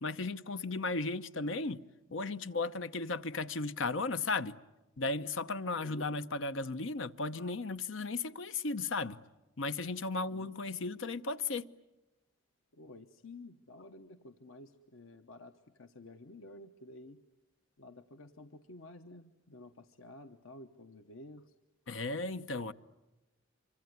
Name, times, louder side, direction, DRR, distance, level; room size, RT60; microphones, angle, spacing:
voice 1, 0.0-1.8 2.1-4.6 5.0-9.2 9.6-11.7 21.9-22.7, left 3 dB, 70° left, 0.9 m, -35 dB
voice 2, 5.8-6.1 10.3-10.5 12.7-17.2 17.8-21.5, left 2 dB, 90° left, 1.1 m, -52 dB
26.0 x 24.5 x 9.5 m
head